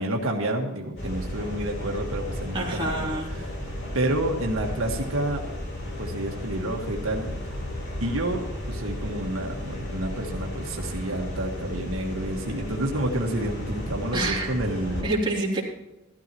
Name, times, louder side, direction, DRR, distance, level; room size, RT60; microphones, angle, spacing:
voice 1, 0.0-3.1 3.3-3.5 3.9-5.4 6.0-7.4 8.0-15.1, right 1 dB, 80° right, 0 dB, 1.6 m, -29 dB
sound 1, 1.0-15.0, left 1 dB, 55° left, 3.9 m, -34 dB
voice 2, 2.5-3.3 14.1-14.5 15.0-15.6, right 2 dB, 25° right, -5 dB, 3.2 m, -27 dB
16.0 x 13.0 x 3.0 m, 1.0 s
head